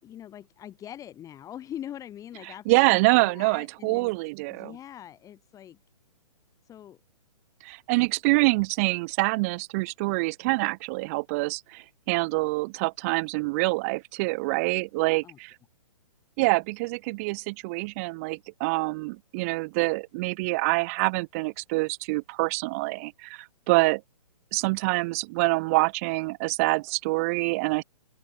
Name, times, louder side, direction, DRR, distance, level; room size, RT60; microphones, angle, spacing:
voice 1, 0.0-4.1 4.5-5.8 6.7-7.0 15.2-15.4, left 11 dB, 15° left, 4.6 m, -42 dB
voice 2, 2.7-4.7 7.6-15.5 16.4-24.0 24.5-27.8, right 26 dB, 20° right, 0.5 m, -26 dB
open air
figure-of-eight pair, 125°, 21 cm